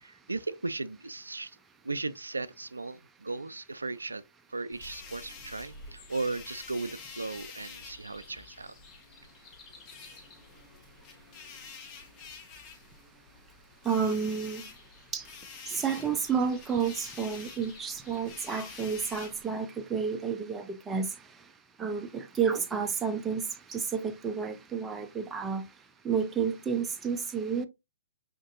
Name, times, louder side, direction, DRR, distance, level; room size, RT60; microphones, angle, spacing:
voice 1, 0.0-1.6 1.8-4.2 4.5-8.7, right 3 dB, 90° right, 0.3 m, -36 dB
sound 1, 4.7-19.5, left 5 dB, 25° left, 0.9 m, -48 dB
voice 2, 13.8-14.7 15.1-15.3 15.7-21.2 21.8-25.7 26.0-27.7, right 6 dB, 10° right, 0.4 m, -30 dB
5.1 x 2.5 x 2.5 m
figure-of-eight pair, 130°, 0 cm